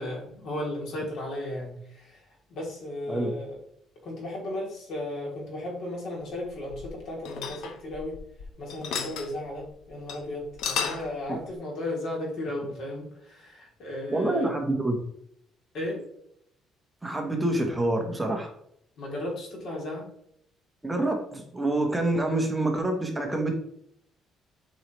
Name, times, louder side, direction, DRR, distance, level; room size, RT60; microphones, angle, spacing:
voice 1, 0.0-2.2 2.5-3.6 4.0-8.1 8.6-14.5 15.7-16.0 19.0-20.1, left 1 dB, 65° left, -2 dB, 2.9 m, -35 dB
sound 1, 6.4-8.4 8.7-9.3 9.7-9.8 10.1-10.2 10.5-11.1, left 6 dB, 80° left, 1.0 m, -33 dB
voice 2, 14.1-15.0 17.0-18.5 20.8-23.5, right 2 dB, 10° right, 2 dB, 1.0 m, -27 dB
8.3 x 4.8 x 3.1 m, 0.71 s
cardioid pair, 145°, 0 cm